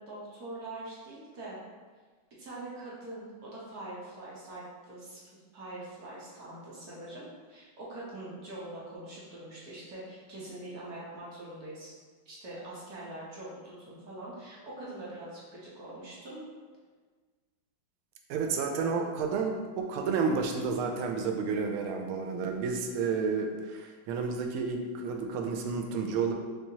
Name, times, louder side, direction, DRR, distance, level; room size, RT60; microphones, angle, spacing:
voice 1, 0.0-1.6 2.4-5.2 5.5-11.9 12.3-16.4, right 1 dB, 55° right, -7 dB, 1.2 m, -43 dB
voice 2, 18.3-26.3, right 5 dB, 90° right, 3 dB, 1.4 m, -31 dB
5.4 x 2.7 x 2.7 m, 1.4 s
omnidirectional pair, 2.3 m